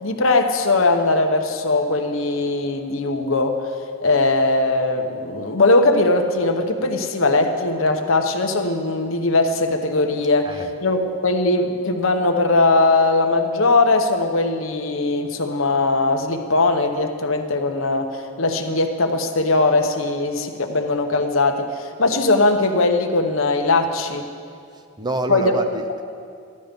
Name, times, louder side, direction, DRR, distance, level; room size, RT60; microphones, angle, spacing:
voice 1, 0.0-3.6 4.0-24.3 25.3-25.5, left 2 dB, 80° left, 5 dB, 1.1 m, -20 dB
voice 2, 24.7-26.0, right 1 dB, 20° right, 7 dB, 0.6 m, -27 dB
14.5 x 12.0 x 5.3 m, 2.4 s
head